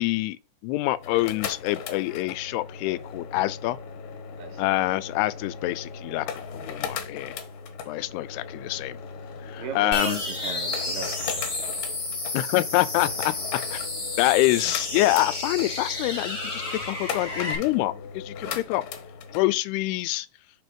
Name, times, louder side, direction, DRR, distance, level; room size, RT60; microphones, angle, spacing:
voice 1, 0.0-3.8 4.6-7.4 7.9-9.0 9.4-10.2 12.3-13.3 13.7-13.8 14.2-18.8 19.3-20.3, left 18 dB, 85° left, 2.6 m, -26 dB
sound 1, 0.9-19.5, left 6 dB, 70° left, 2.4 m, -38 dB
voice 2, 9.6-11.6 18.4-18.6, right 6 dB, 80° right, 2.9 m, -37 dB
sound 2, 9.9-17.6, left 2 dB, 15° left, 2.9 m, -31 dB
6.7 x 4.2 x 5.2 m
omnidirectional pair, 4.6 m